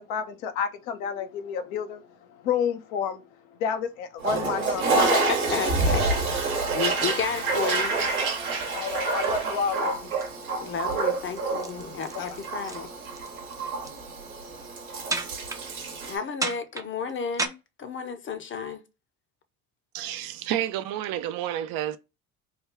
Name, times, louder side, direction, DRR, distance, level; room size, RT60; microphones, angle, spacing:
voice 1, 0.0-5.1 8.7-10.1 12.1-12.4, left 7 dB, 75° left, 0.7 m, -30 dB
Toilet flush, 4.2-16.2, right 3 dB, 85° right, 1.0 m, -28 dB
voice 2, 5.1-8.0 10.6-12.9 16.1-18.8, left 6 dB, 30° left, 0.7 m, -32 dB
sound 1, 7.6-9.3 9.7-9.9 10.2-10.4 10.7-11.0 11.3-13.3 13.5-14.0 15.1-15.6 16.4-17.5, right 3 dB, 10° right, 0.5 m, -34 dB
voice 3, 19.9-22.0, right 12 dB, 55° right, 0.5 m, -30 dB
3.3 x 2.3 x 3.3 m
hypercardioid pair, 65°, 42 cm